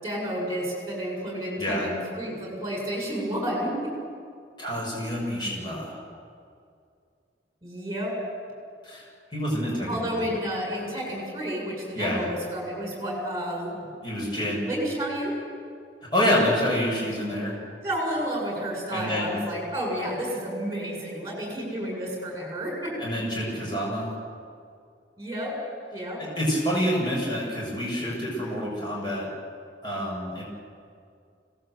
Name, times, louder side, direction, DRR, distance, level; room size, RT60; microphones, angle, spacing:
voice 1, 0.0-3.9 7.6-8.2 9.9-13.8 14.7-15.3 17.8-23.0 25.2-25.5 25.9-26.2, equal, 15° right, -1 dB, 7.2 m, -31 dB
voice 2, 1.6-1.9 4.6-6.0 8.8-10.3 11.9-12.3 14.0-14.7 16.1-17.5 18.9-19.4 23.0-24.1 26.2-29.3 29.8-30.4, equal, 25° left, -4 dB, 6.9 m, -27 dB
25.5 x 18.5 x 8.1 m, 2.3 s
head